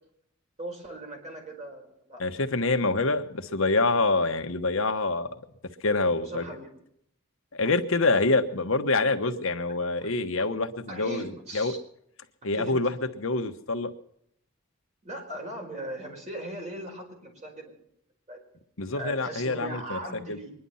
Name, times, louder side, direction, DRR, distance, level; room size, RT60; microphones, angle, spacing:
voice 1, 0.6-2.2 6.2-6.7 10.0-10.1 10.4-10.5 10.9-11.8 12.5-12.7 15.0-17.7 18.3-18.4 18.9-20.5, right 1 dB, 35° right, 1 dB, 4.7 m, -39 dB
voice 2, 2.2-5.3 5.8-6.5 7.5-11.7 12.4-12.9 13.2-13.9 18.8-20.0 20.3-20.4, left 3 dB, 80° left, 7 dB, 1.3 m, -26 dB
23.0 x 11.0 x 5.6 m, 0.74 s
head